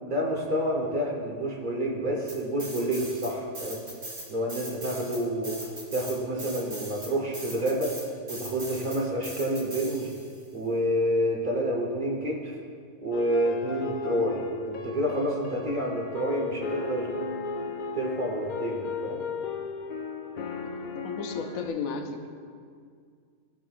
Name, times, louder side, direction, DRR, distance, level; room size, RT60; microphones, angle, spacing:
voice 1, 0.0-3.8 4.3-10.1 10.5-12.6 13.0-17.1 17.9-19.2, equal, 40° right, -1 dB, 1.0 m, -29 dB
sound 1, 2.3-3.3 3.5-10.4, right 2 dB, 60° right, 2.0 m, -40 dB
sound 2, 13.1-21.7, left 4 dB, 65° left, 0.5 m, -36 dB
voice 2, 21.0-22.3, left 5 dB, 90° left, 5 dB, 1.1 m, -33 dB
15.0 x 5.3 x 2.4 m, 2.1 s
omnidirectional pair, 1.4 m